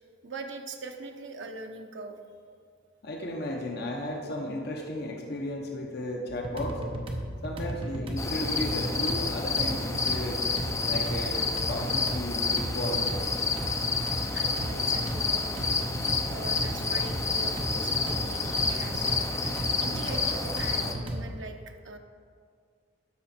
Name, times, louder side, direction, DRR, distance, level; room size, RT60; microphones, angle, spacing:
voice 1, 0.2-2.2 14.3-15.8 16.3-19.5 19.8-22.0, right 3 dB, 65° right, 4 dB, 0.8 m, -42 dB
voice 2, 3.0-6.8 7.4-10.4 10.8-13.0, left 1 dB, 55° left, 1 dB, 0.9 m, -34 dB
sound 1, 6.3-21.3, right 1 dB, 30° right, 0.8 m, -35 dB
sound 2, 8.2-20.9, left 4 dB, 15° left, 0.5 m, -29 dB
12.5 x 5.7 x 4.3 m, 2.2 s
head